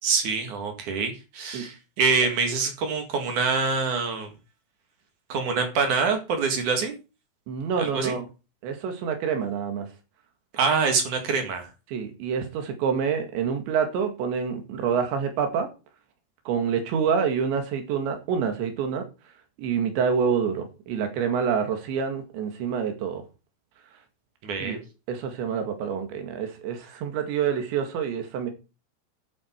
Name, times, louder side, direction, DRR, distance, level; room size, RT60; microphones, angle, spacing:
voice 1, 0.0-4.3 5.3-7.0 7.8-8.2 10.5-11.7 24.4-24.8, right 5 dB, 55° right, 3.0 m, -25 dB
voice 2, 7.5-8.3 8.6-9.9 11.9-15.7 16.5-19.1 19.6-23.2 24.6-24.8 25.1-28.5, right 7 dB, 85° right, 4.3 m, -27 dB
12.0 x 8.3 x 4.6 m
omnidirectional pair, 5.0 m